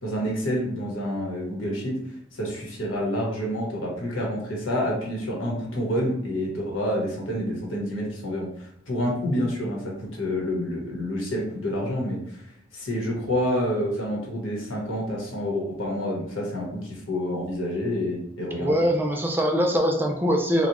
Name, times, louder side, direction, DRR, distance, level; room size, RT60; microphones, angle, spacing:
voice 1, 0.0-2.0 2.3-12.4 12.7-18.7, equal, 90° left, -3 dB, 1.2 m, -28 dB
voice 2, 18.6-20.7, equal, 10° right, 2 dB, 0.4 m, -22 dB
4.0 x 2.3 x 2.9 m, 0.77 s
head